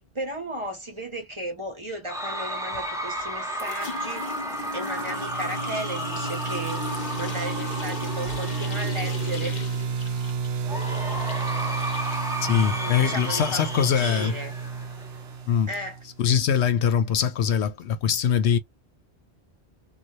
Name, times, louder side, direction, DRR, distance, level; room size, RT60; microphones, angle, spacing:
voice 1, 0.1-4.3 4.7-9.6 12.7-14.5 15.5-16.0, right 1 dB, 30° right, 0.8 m, -35 dB
Cheering / Crowd, 2.1-9.4 10.6-15.4, right 1 dB, 5° right, 0.6 m, -33 dB
sound 1, 2.7-3.3 3.6-13.0, left 4 dB, 45° left, 0.8 m, -38 dB
sound 2, 4.5-16.3, right 5 dB, 70° right, 0.8 m, -32 dB
voice 2, 12.4-14.3 15.5-15.7 16.2-18.6, left 7 dB, 85° left, 0.9 m, -22 dB
2.8 x 2.3 x 3.0 m
omnidirectional pair, 1.1 m